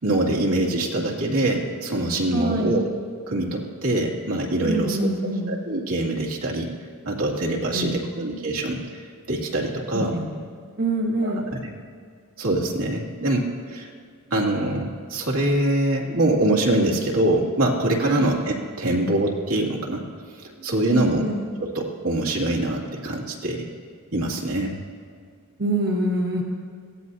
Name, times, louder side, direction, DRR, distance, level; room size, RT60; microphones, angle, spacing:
voice 1, 0.0-2.8 3.3-5.1 5.5-6.7 7.1-8.8 9.3-10.1 11.2-11.7 12.4-13.9 14.3-20.0 20.6-21.2 21.6-23.6 24.1-24.8, right 1 dB, 80° right, -2 dB, 2.6 m, -24 dB
voice 2, 2.3-2.9 4.6-5.6 7.7-8.2 9.9-10.3 10.7-11.4 18.0-18.3 20.6-21.4 25.6-26.4, right 1 dB, 45° right, -2 dB, 1.4 m, -26 dB
22.5 x 16.5 x 2.8 m, 2.2 s
head